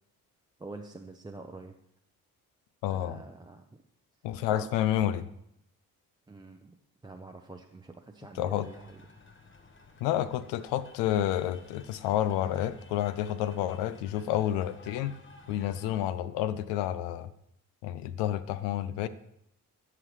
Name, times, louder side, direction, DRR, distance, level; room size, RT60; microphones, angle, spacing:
voice 1, 0.6-1.8 2.9-3.8 4.5-4.7 6.3-6.8 7.0-9.0, right 3 dB, 10° right, 3 dB, 0.5 m, -46 dB
voice 2, 2.8-3.2 4.2-5.3 8.4-8.7 10.0-15.1 15.5-17.3 17.8-19.1, left 12 dB, 75° left, 14 dB, 0.6 m, -29 dB
sound 1, 8.6-16.0, left 3 dB, 25° left, 1.1 m, -54 dB
13.0 x 5.8 x 3.2 m, 0.76 s
hypercardioid pair, 45°, 44 cm